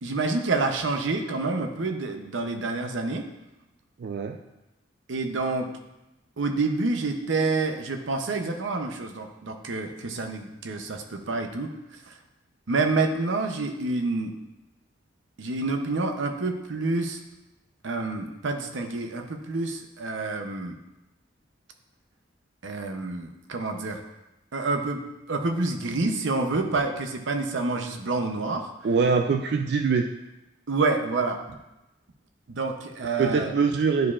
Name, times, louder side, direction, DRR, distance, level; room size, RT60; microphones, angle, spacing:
voice 1, 0.0-3.3 5.1-5.7 6.4-11.7 12.1-12.2 12.7-14.3 15.4-17.2 17.8-20.8 22.6-24.0 24.5-25.0 25.3-28.7 30.7-31.4 32.5-33.5, right 3 dB, 85° right, 4 dB, 0.7 m, -28 dB
voice 2, 4.0-4.4 28.8-30.1 33.2-34.1, right 5 dB, 60° right, 4 dB, 0.3 m, -23 dB
10.0 x 4.7 x 2.4 m, 0.96 s
head